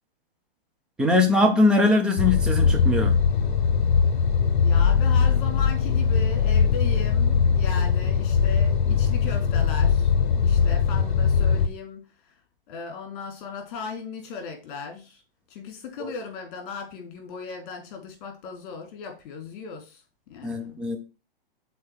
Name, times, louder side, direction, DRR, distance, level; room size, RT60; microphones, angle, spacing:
voice 1, 1.0-3.2 16.0-16.1 20.4-21.0, left 2 dB, 5° right, 0.4 m, -21 dB
sound 1, 2.2-11.7, left 6 dB, 55° left, 0.9 m, -21 dB
voice 2, 4.5-12.3 12.7-15.2 15.5-20.0 20.3-20.8, left 5 dB, 40° left, 2.8 m, -37 dB
6.4 x 4.1 x 4.6 m
hypercardioid pair, 145°, 30 cm